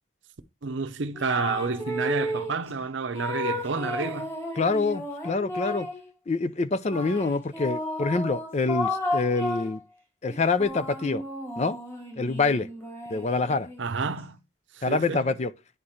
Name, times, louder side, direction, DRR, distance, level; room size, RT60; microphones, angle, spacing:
voice 1, 0.6-4.3 13.8-14.4 14.7-15.3, right 4 dB, 65° right, 0.7 m, -30 dB
sound 1, 1.1-2.6 3.1-6.1 6.9-9.8 10.3-13.9, left 1 dB, 10° left, 2.0 m, -33 dB
voice 2, 4.5-5.9 6.3-9.8 10.2-11.2 11.6-11.8 12.2-12.7 13.1-13.7 14.8-15.5, left 3 dB, 35° left, 0.4 m, -26 dB
9.6 x 4.4 x 4.9 m
head